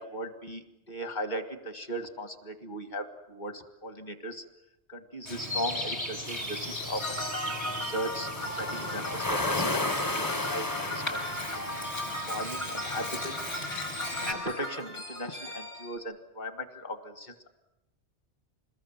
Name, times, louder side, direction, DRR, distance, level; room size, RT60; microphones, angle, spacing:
voice 1, 0.0-4.4 4.9-11.2 11.7-11.8 12.3-13.3 14.2-17.5, equal, 40° left, 8 dB, 2.0 m, -38 dB
Bird vocalization bird call bird song, 5.2-14.3, left 1 dB, 55° left, 6.3 m, -37 dB
sound 1, 6.3-12.2, left 2 dB, 20° left, 0.8 m, -34 dB
sound 2, 7.0-16.0, left 1 dB, 85° left, 5.6 m, -37 dB
27.0 x 20.5 x 7.4 m, 0.93 s
omnidirectional pair, 1.2 m